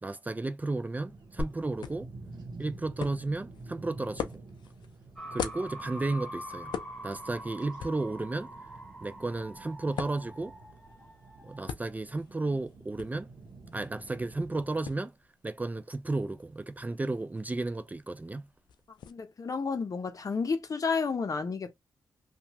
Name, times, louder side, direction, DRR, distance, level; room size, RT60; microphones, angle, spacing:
voice 1, 0.0-2.1 2.6-4.3 5.3-6.7 7.0-8.5 9.0-10.5 11.4-13.3 13.7-15.1 15.4-18.5, right 2 dB, 20° right, 0.4 m, -33 dB
sound 1, 1.0-14.9, right 3 dB, 65° right, 0.8 m, -49 dB
sound 2, 1.4-19.1, left 6 dB, 90° left, 0.4 m, -44 dB
sound 3, 5.2-11.7, right 1 dB, 5° left, 1.3 m, -45 dB
voice 2, 19.1-21.7, left 5 dB, 50° left, 0.7 m, -31 dB
2.8 x 2.3 x 2.8 m
cardioid pair, 55°, 7 cm